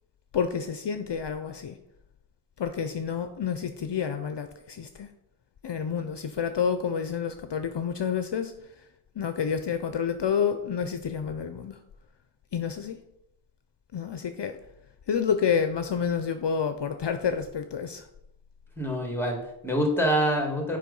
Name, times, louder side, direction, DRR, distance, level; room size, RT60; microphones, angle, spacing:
voice 1, 0.3-1.8 2.6-5.1 5.6-8.9 9.1-11.8 12.5-13.0 13.9-14.6 15.1-18.1, left 7 dB, 60° left, 8 dB, 0.6 m, -29 dB
voice 2, 18.8-20.8, equal, 5° left, 1 dB, 1.9 m, -26 dB
7.5 x 4.9 x 5.4 m, 0.86 s
wide cardioid pair, 85°, 48 cm